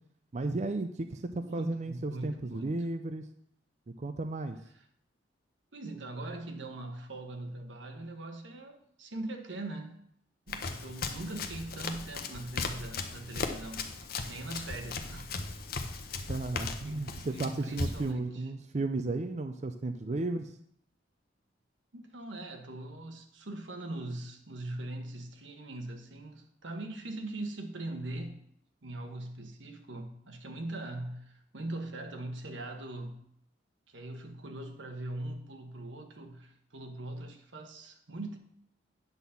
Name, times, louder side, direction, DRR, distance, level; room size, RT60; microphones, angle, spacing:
voice 1, 0.3-3.3 4.0-4.6 16.3-20.5, right 2 dB, 40° right, 0.5 m, -34 dB
voice 2, 1.4-2.8 4.7-4.8 5.7-10.0 10.5-13.9 14.3-15.4 16.8-18.5 21.9-28.4 28.8-33.2 33.9-38.4, right 2 dB, 90° right, 1.3 m, -41 dB
Run, 10.5-18.1, left 4 dB, 55° left, 0.8 m, -37 dB
9.2 x 4.1 x 7.0 m
head